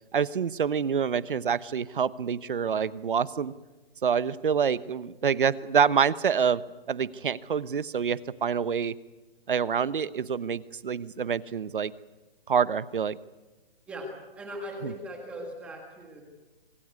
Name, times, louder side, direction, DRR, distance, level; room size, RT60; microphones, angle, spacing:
voice 1, 0.1-3.5 4.0-6.6 6.9-8.9 9.5-11.9 12.5-13.2 14.8-14.9, right 7 dB, 60° right, 17 dB, 1.0 m, -26 dB
voice 2, 13.9-16.2, equal, 5° right, 2 dB, 1.6 m, -39 dB
26.0 x 17.5 x 9.6 m, 1.1 s
hypercardioid pair, 175°, 30 cm